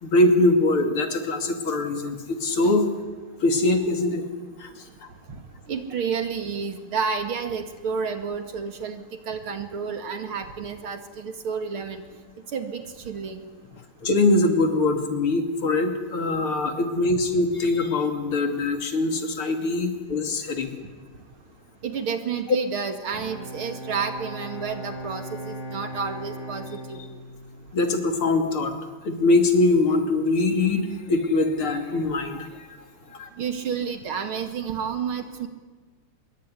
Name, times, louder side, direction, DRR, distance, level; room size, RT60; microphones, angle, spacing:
voice 1, 0.0-2.9 3.4-4.3 4.6-4.7 14.0-20.7 27.7-28.7 29.1-32.7 33.1-33.3, left 2 dB, 75° left, 5 dB, 3.4 m, -22 dB
voice 2, 5.7-12.0 12.5-13.4 21.8-27.0 33.4-35.5, right 6 dB, 75° right, 7 dB, 3.0 m, -30 dB
Bowed string instrument, 23.0-28.6, right 1 dB, 40° right, 7.4 m, -39 dB
24.5 x 22.5 x 9.9 m, 1.4 s
omnidirectional pair, 2.4 m